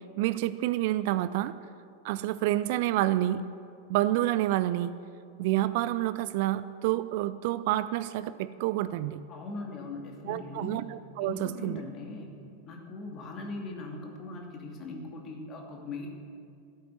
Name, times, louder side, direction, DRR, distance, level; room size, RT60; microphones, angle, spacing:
voice 1, 0.2-1.5 2.0-3.4 3.9-4.9 5.4-9.2 10.3-11.8, right 14 dB, 50° right, 15 dB, 0.4 m, -28 dB
voice 2, 9.3-10.7 11.2-12.3 12.7-16.1, left 3 dB, 30° left, 1 dB, 2.6 m, -40 dB
13.5 x 8.5 x 9.6 m, 2.4 s
figure-of-eight pair, 90°, 0 cm